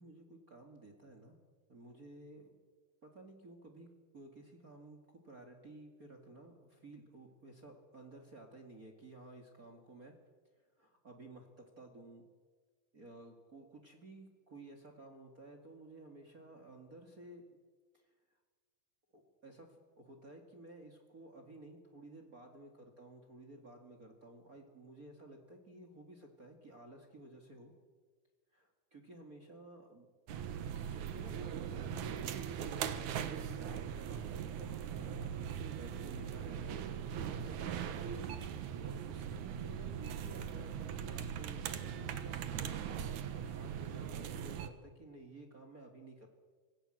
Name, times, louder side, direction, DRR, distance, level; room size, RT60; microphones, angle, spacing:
voice 1, 0.0-1.4 1.7-2.6 3.0-10.1 10.8-12.3 12.9-17.4 17.9-18.1 19.1-27.7 28.5-30.1 30.9-35.3 35.6-38.3 38.6-46.3, right 2 dB, 30° right, 4 dB, 2.1 m, -54 dB
sound 1, 30.3-44.7, right 8 dB, 70° right, 2.6 m, -40 dB
26.0 x 16.0 x 7.8 m, 1.5 s
omnidirectional pair, 3.6 m